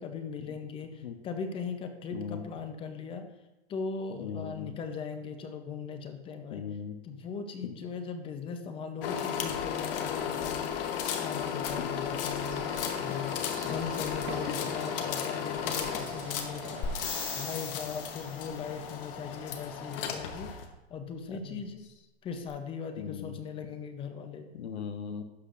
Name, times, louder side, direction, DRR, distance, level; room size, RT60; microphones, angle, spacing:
voice 1, 0.0-3.3 3.7-6.6 7.0-10.8 11.2-13.4 13.6-16.9 17.3-21.8 22.2-24.5, left 5 dB, 15° left, 7 dB, 0.6 m, -39 dB
voice 2, 2.1-2.4 4.2-4.7 6.5-7.0 7.6-7.7 11.8-11.9 14.5-14.6 21.3-21.6 23.0-23.4 24.5-25.2, left 7 dB, 90° left, 8 dB, 1.0 m, -38 dB
sound 1, 9.0-20.6, left 8 dB, 60° left, 1.1 m, -35 dB
sound 2, 12.3-17.5, right 8 dB, 25° right, 0.5 m, -46 dB
sound 3, 16.8-18.7 22.5-22.6, left 6 dB, 35° left, 1.7 m, -38 dB
11.5 x 6.4 x 2.5 m, 1.0 s
hypercardioid pair, 140°, 32 cm